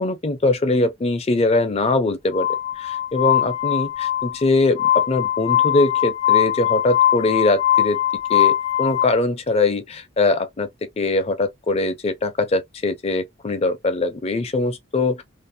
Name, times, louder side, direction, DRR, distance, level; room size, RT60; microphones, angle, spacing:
voice 1, 0.0-2.5 2.8-8.0 8.3-15.2, left 2 dB, 30° left, 0.4 m, -22 dB
Glass, 2.3-9.0, left 11 dB, 85° left, 0.5 m, -21 dB
2.5 x 2.0 x 2.6 m
head